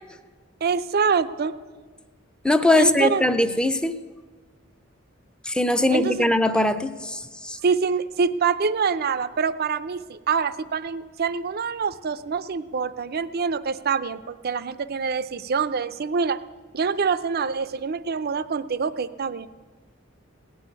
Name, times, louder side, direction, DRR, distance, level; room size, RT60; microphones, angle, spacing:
voice 1, 0.6-1.5 2.7-3.2 5.9-6.3 7.6-16.4 16.7-19.5, right 5 dB, 50° right, 14 dB, 0.5 m, -25 dB
voice 2, 2.4-3.9 5.5-6.9 7.5-7.6, left 1 dB, 5° left, 9 dB, 0.5 m, -20 dB
17.5 x 6.3 x 9.8 m, 1.4 s
head